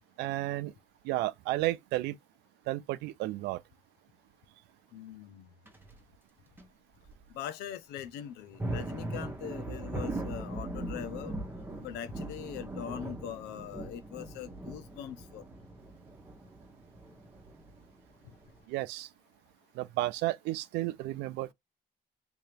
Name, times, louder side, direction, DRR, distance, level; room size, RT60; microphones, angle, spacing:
voice 1, 0.2-0.7 1.0-2.2 2.7-3.6 18.7-19.1 19.7-21.5, right 17 dB, 90° right, 0.5 m, -32 dB
voice 2, 4.9-5.5 7.3-11.3 11.8-15.4, left 9 dB, 80° left, 0.7 m, -41 dB
sound 1, 5.7-6.0 6.6-6.7 7.1-7.2 8.3-18.6, right 2 dB, 10° right, 1.1 m, -40 dB
3.5 x 2.8 x 3.3 m
cardioid pair, 110°, 17 cm